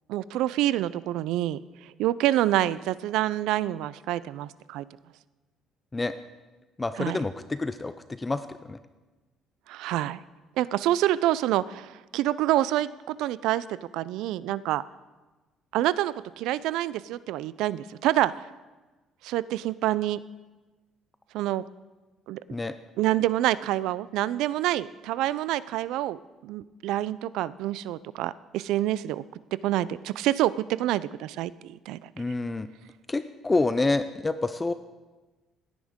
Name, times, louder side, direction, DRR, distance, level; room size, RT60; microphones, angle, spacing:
voice 1, 0.1-4.8 7.0-7.2 9.7-10.2 10.6-14.8 15.7-18.5 19.2-20.2 21.3-21.6 22.3-22.4 23.0-29.2 29.6-32.1, right 14 dB, 80° right, 19 dB, 0.3 m, -27 dB
voice 2, 6.8-7.9 8.2-8.4 8.7-8.8 22.5-22.7 32.2-32.7 33.1-34.7, left 3 dB, 15° left, 12 dB, 0.4 m, -27 dB
16.5 x 9.9 x 3.6 m, 1.2 s
cardioid pair, 120°, 0 cm